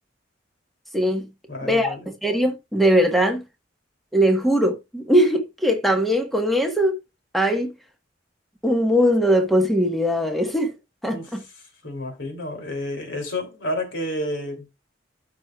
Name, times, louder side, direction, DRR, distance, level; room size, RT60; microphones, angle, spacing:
voice 1, 0.9-1.3 1.6-1.9 2.2-3.4 4.1-7.0 7.3-7.7 8.6-10.7 11.0-11.4, equal, ahead, 1.5 m, -20 dB
voice 2, 1.5-2.1 11.1-11.3 11.8-14.7, left 1 dB, 80° left, 3.2 m, -30 dB
13.0 x 6.3 x 2.4 m
head